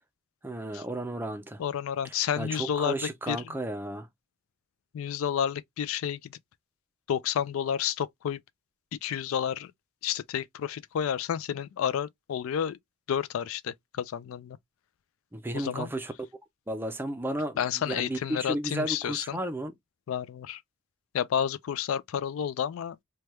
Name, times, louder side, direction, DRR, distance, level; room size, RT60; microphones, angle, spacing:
voice 1, 0.4-1.6 2.0-4.1 15.3-16.1 16.7-19.7, right 1 dB, 10° right, 0.4 m, -33 dB
voice 2, 1.6-3.4 4.9-6.3 7.1-8.4 9.0-9.7 10.0-12.8 13.1-14.6 15.5-15.9 17.6-19.4 20.1-20.6 21.1-23.0, left 8 dB, 75° left, 0.3 m, -30 dB
3.3 x 2.2 x 2.9 m
head